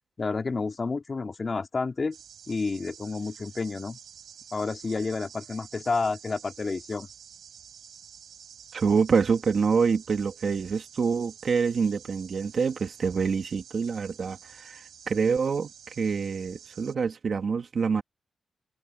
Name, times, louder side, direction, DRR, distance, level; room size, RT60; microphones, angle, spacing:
voice 1, 0.2-2.2 2.5-4.0 4.5-7.1, left 4 dB, 35° left, 2.9 m, -30 dB
sound 1, 2.1-16.9, right 8 dB, 90° right, 5.7 m, -49 dB
voice 2, 8.7-15.7 16.0-18.0, right 5 dB, 55° right, 2.5 m, -26 dB
wide cardioid pair, 125°, 0 cm